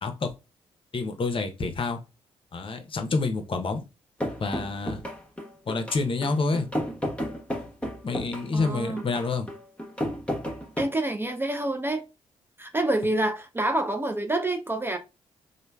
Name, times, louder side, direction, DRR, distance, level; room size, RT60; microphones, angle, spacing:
voice 1, 0.9-2.0 2.5-3.8 4.4-5.0 5.7-6.7 8.0-9.5, left 3 dB, 40° left, 0.7 m, -28 dB
sound 1, 4.2-10.8, equal, 10° left, 0.9 m, -32 dB
voice 2, 8.5-9.0 10.8-12.1 12.6-15.0, right 1 dB, 15° right, 0.4 m, -27 dB
3.1 x 2.1 x 2.2 m
hypercardioid pair, 40°, 14 cm